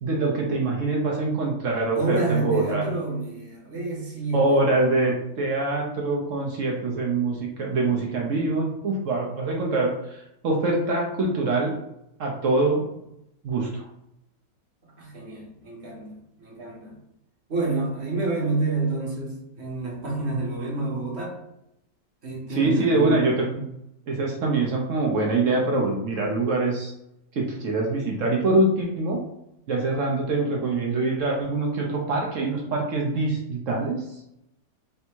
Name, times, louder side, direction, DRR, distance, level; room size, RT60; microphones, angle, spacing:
voice 1, 0.0-2.8 4.3-11.7 12.2-12.8 13.4-13.8 22.6-23.7 24.1-26.9 27.3-29.2 29.7-34.0, right 2 dB, 60° right, -1 dB, 0.8 m, -24 dB
voice 2, 1.9-4.7 14.8-17.0 17.5-21.4 22.2-23.3, right 3 dB, 45° right, -2 dB, 1.1 m, -29 dB
3.4 x 2.7 x 4.4 m, 0.83 s
omnidirectional pair, 1.9 m